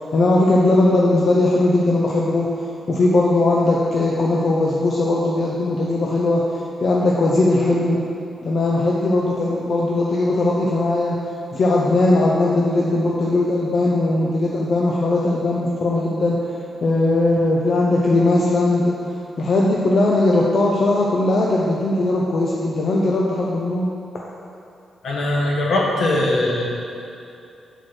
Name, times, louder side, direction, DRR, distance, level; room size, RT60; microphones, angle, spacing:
voice 1, 0.1-2.5 2.9-6.4 6.8-8.0 8.4-11.2 11.5-16.4 16.8-19.0 19.4-23.9, left 2 dB, 55° left, -4 dB, 0.6 m, -19 dB
voice 2, 25.0-26.7, left 1 dB, 75° left, -3 dB, 1.1 m, -20 dB
6.4 x 4.5 x 4.4 m, 2.7 s
cardioid pair, 105°, 0 cm